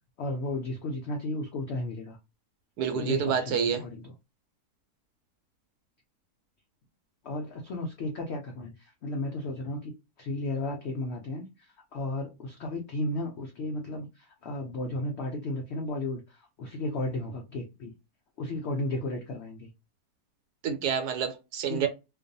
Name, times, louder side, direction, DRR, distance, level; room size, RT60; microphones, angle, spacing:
voice 1, 0.2-2.2 2.9-4.1 7.2-9.9 10.2-17.9 18.4-19.7 21.7-21.9, left 2 dB, 85° left, 0.5 m, -34 dB
voice 2, 2.8-3.8 20.6-21.9, right 7 dB, 75° right, 1.1 m, -28 dB
2.5 x 2.3 x 2.6 m
omnidirectional pair, 1.7 m